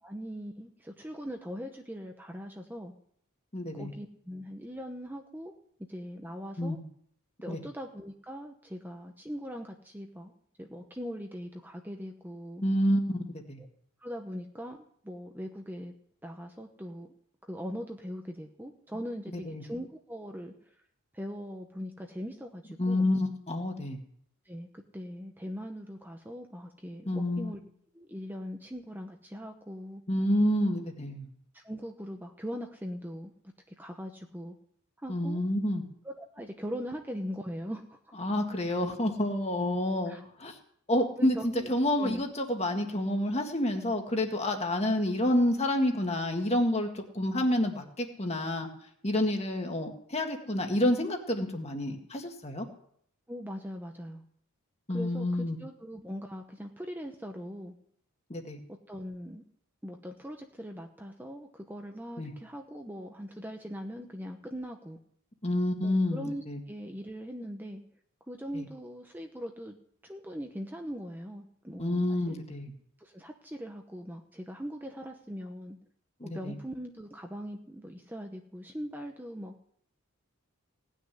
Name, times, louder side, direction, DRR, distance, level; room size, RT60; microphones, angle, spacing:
voice 1, 0.0-2.9 3.7-5.5 5.9-6.8 7.4-10.3 10.6-12.6 14.0-15.9 16.2-17.1 17.4-20.5 21.1-23.1 24.5-27.6 27.9-30.0 31.5-33.3 33.8-34.5 35.0-35.4 36.0-38.2 40.1-40.3 41.2-41.7 42.0-42.2 53.3-54.2 54.9-57.7 58.7-59.4 59.8-65.0 65.8-67.8 68.3-69.8 70.0-72.4 73.0-75.8 76.2-79.5, equal, 10° right, 3 dB, 1.0 m, -41 dB
voice 2, 3.5-3.9 6.6-6.8 7.5-7.6 12.6-13.6 19.5-19.6 22.8-24.0 27.1-27.5 30.1-31.3 35.1-35.8 38.2-40.6 40.9-41.4 41.7-48.7 49.0-52.7 54.9-55.6 58.3-58.6 62.2-62.3 65.4-66.6 68.5-68.6 71.8-72.7 76.2-76.5, left 1 dB, 30° left, 4 dB, 1.9 m, -29 dB
18.0 x 6.4 x 9.9 m, 0.66 s
head